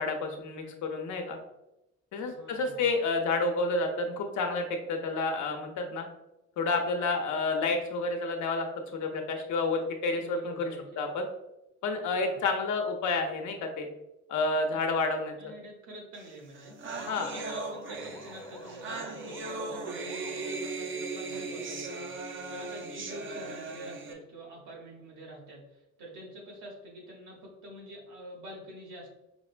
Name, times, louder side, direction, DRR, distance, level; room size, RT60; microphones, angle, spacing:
voice 1, 0.0-1.4 2.1-6.1 6.6-8.7 8.9-11.3 11.8-13.9 14.3-15.5 17.1-17.3, left 3 dB, 75° left, 4 dB, 0.7 m, -30 dB
voice 2, 2.2-2.8 10.1-11.0 12.1-12.4 14.7-15.0 15.3-16.8 17.2-22.0 22.5-29.1, right 1 dB, 85° right, -2 dB, 1.3 m, -46 dB
sound 1, 16.3-16.4 16.5-24.1, right 3 dB, 40° right, 0.5 m, -38 dB
sound 2, 16.9-20.8, left 1 dB, 15° left, 0.6 m, -47 dB
5.2 x 2.2 x 2.4 m, 0.89 s
cardioid pair, 90°, 30 cm